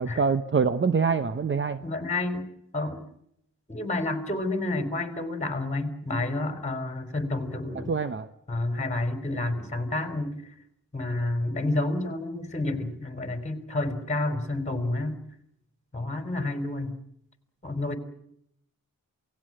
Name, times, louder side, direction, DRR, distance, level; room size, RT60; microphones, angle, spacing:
voice 1, 0.0-1.8 7.9-8.3, right 5 dB, 35° right, 10 dB, 0.9 m, -25 dB
voice 2, 1.8-3.0 3.7-7.9 8.5-10.3 10.9-15.2 15.9-17.0 17.6-18.0, left 2 dB, 20° left, 8 dB, 3.9 m, -29 dB
28.0 x 18.5 x 7.6 m, 0.77 s
wide cardioid pair, 100°, 34 cm